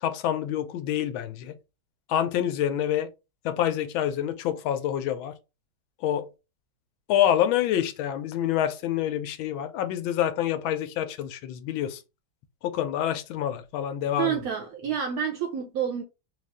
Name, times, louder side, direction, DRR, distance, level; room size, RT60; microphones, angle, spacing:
voice 1, 0.0-1.6 2.1-3.1 3.4-5.3 6.0-6.3 7.1-12.0 12.6-14.4, left 11 dB, 90° left, 1.4 m, -27 dB
voice 2, 14.2-16.0, right 8 dB, 65° right, 0.9 m, -28 dB
4.0 x 2.4 x 3.4 m
omnidirectional pair, 2.1 m